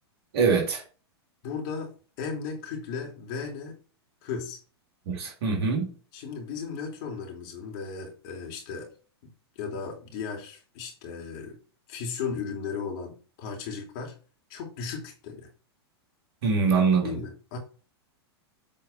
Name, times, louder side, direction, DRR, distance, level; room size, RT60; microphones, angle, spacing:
voice 1, 0.3-0.8 5.1-5.9 16.4-17.2, right 5 dB, 65° right, 3.0 m, -23 dB
voice 2, 1.4-3.8 4.2-4.6 6.1-8.9 9.6-11.6 11.9-14.1 14.5-15.5 17.0-17.6, left 5 dB, 55° left, 3.0 m, -36 dB
7.9 x 4.1 x 4.4 m
hypercardioid pair, 105°, 14 cm